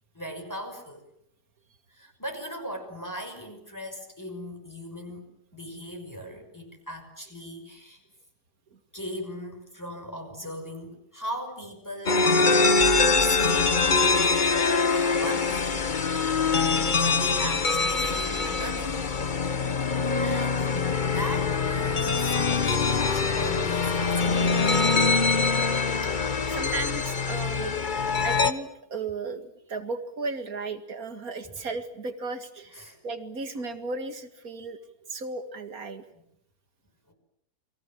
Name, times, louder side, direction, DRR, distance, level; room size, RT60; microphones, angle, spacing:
voice 1, 0.1-1.1 1.9-8.0 8.9-12.4 13.2-13.9 14.9-16.0 16.6-19.0 20.2-24.9 31.4-31.6 32.7-33.0 37.1-37.2, equal, 10° left, 4 dB, 5.8 m, -38 dB
sound 1, 12.1-28.5, left 4 dB, 35° left, 1.2 m, -24 dB
voice 2, 26.5-34.8 35.1-36.1, right 3 dB, 65° right, 8 dB, 2.5 m, -35 dB
29.5 x 23.0 x 7.6 m, 0.76 s
omnidirectional pair, 1.6 m